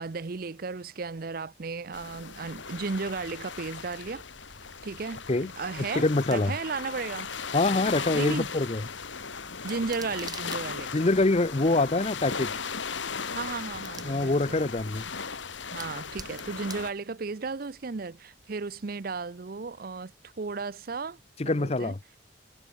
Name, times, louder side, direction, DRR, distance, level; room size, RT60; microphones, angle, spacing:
voice 1, 0.0-4.2 4.8-7.3 8.1-8.5 9.6-11.0 13.3-14.6 15.7-21.2 21.4-21.9, right 4 dB, 50° right, 0.6 m, -35 dB
sound 1, 1.9-16.9, left 5 dB, 70° left, 1.9 m, -37 dB
sound 2, 3.5-18.1, right 5 dB, 20° right, 5.9 m, -52 dB
voice 2, 5.9-6.5 7.5-8.8 10.9-12.5 14.1-15.0 21.4-22.0, left 2 dB, 30° left, 0.7 m, -25 dB
head